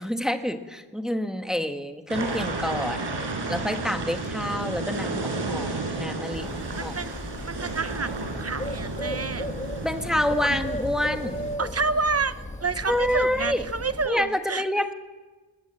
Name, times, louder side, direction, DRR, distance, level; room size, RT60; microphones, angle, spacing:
voice 1, 0.0-3.1 3.5-6.9 9.8-11.4 12.9-13.6 14.1-14.9, left 1 dB, ahead, 7 dB, 1.3 m, -27 dB
sound 1, 2.1-11.6, right 3 dB, 75° right, 4.7 m, -32 dB
Bird, 6.3-14.1, left 1 dB, 15° left, 1.5 m, -36 dB
voice 2, 6.8-7.2 7.4-9.5 10.1-10.6 11.6-14.7, right 4 dB, 35° right, 13 dB, 0.8 m, -29 dB
19.5 x 19.5 x 7.8 m, 1.3 s
wide cardioid pair, 95°, 43 cm